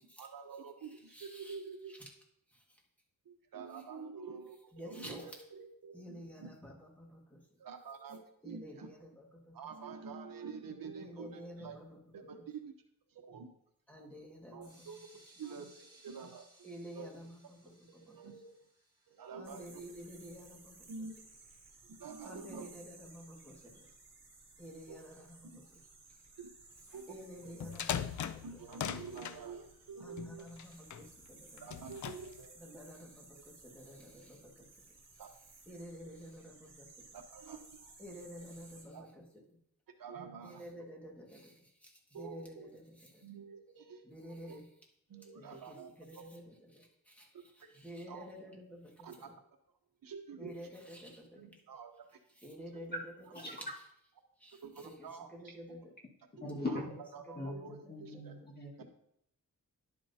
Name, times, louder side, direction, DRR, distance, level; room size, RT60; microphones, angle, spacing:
voice 1, 0.2-1.9 3.2-6.5 7.6-8.9 9.5-11.8 12.1-12.7 13.1-13.5 14.5-15.1 15.4-16.7 16.9-17.1 18.0-18.5 19.1-19.8 20.9-21.1 21.8-22.7 24.9-25.0 26.4-26.5 26.9-27.0 27.4-27.7 28.4-30.4 31.6-32.5 35.2-35.3 37.1-38.0 38.9-39.1 40.0-40.6 42.1-42.7 43.2-44.6 45.1-46.2 47.6-47.7 48.1-48.3 49.0-49.3 50.0-50.5 51.4-51.9 54.6-55.6 56.4-56.8 57.1-58.3 58.8-58.9, right 5 dB, 70° right, 5 dB, 1.0 m, -48 dB
voice 2, 0.9-1.6 1.9-2.1 2.5-2.8 4.7-5.4 5.9-7.6 8.4-9.6 11.0-12.3 13.9-14.9 16.6-18.3 19.4-20.9 22.2-23.9 24.6-25.7 27.1-28.4 30.0-31.8 32.6-35.0 35.7-37.0 38.0-39.4 40.4-43.3 44.0-44.7 45.4-49.3 50.4-51.4 52.3-53.8 54.4-55.9 57.3-58.3, equal, 5° left, -2 dB, 1.9 m, -51 dB
sound 1, 14.6-20.4, right 1 dB, 10° right, 2.7 m, -64 dB
sound 2, 19.4-38.8, right 3 dB, 50° right, 3.1 m, -58 dB
sound 3, 27.4-29.4 30.2-31.0 31.6-32.4, left 9 dB, 55° left, 0.5 m, -40 dB
voice 3, 56.4-57.0 57.3-58.8, left 2 dB, 30° left, -2 dB, 1.8 m, -40 dB
10.5 x 7.4 x 2.8 m, 0.72 s
wide cardioid pair, 120°, 35 cm